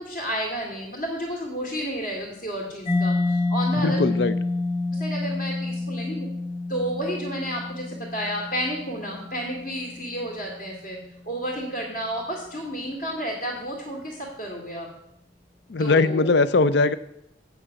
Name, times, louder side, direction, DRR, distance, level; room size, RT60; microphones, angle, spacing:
voice 1, 0.0-4.0 4.9-6.3 6.7-11.0 11.2-14.9 15.8-16.4, equal, 50° left, -3 dB, 2.0 m, -31 dB
Mallet percussion, 2.9-10.4, left 2 dB, 25° left, 1.8 m, -28 dB
voice 2, 3.8-4.4 15.7-16.9, left 3 dB, 65° left, 14 dB, 0.5 m, -20 dB
8.4 x 6.1 x 6.7 m, 0.77 s
head